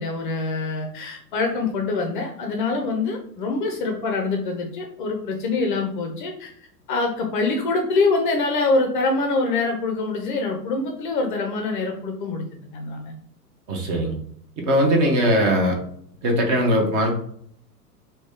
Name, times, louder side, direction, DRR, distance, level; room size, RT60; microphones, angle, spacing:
voice 1, 0.0-6.5 6.9-12.4 12.7-13.1, left 3 dB, 35° left, 2 dB, 0.5 m, -24 dB
voice 2, 13.7-14.1 14.6-15.8 16.2-17.1, equal, 25° right, 1 dB, 0.6 m, -20 dB
3.0 x 2.7 x 3.5 m, 0.65 s
figure-of-eight pair, 100°, 49 cm